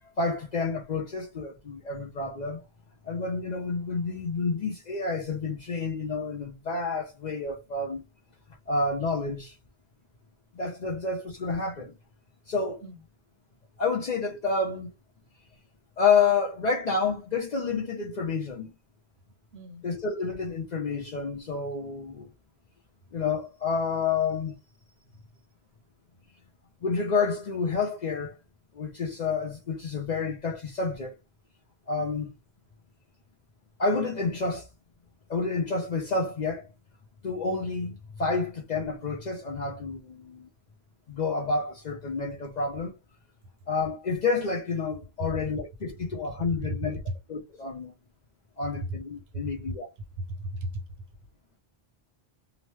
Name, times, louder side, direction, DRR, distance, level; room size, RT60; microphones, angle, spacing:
voice 1, 0.0-2.6 3.0-8.0 8.7-9.6 10.5-11.9 12.5-12.8 13.8-14.9 16.0-18.7 19.8-22.3 23.1-24.6 26.8-28.4 28.7-31.1 31.9-32.3 33.8-34.7 35.3-36.7 37.2-40.5 41.1-43.0 43.7-47.0 47.3-47.9 48.6-49.9, left 4 dB, 50° left, 0.6 m, -29 dB
voice 2, 19.5-19.8 47.1-47.2 49.3-49.7 50.2-50.8, right 1 dB, 75° right, 0.9 m, -35 dB
3.0 x 2.0 x 3.0 m
omnidirectional pair, 1.1 m